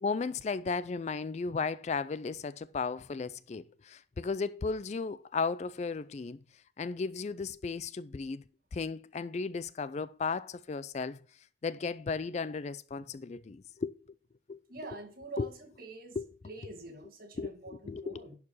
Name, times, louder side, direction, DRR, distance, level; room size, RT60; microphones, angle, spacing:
voice 1, 0.0-6.4 6.8-8.4 8.7-11.2 11.6-13.9 14.5-14.6 15.4-15.5 16.2-16.3 17.4-18.3, left 4 dB, 35° left, 0.3 m, -35 dB
voice 2, 14.7-16.2 16.5-18.4, right 2 dB, 50° right, 1.9 m, -46 dB
11.0 x 4.8 x 5.5 m
head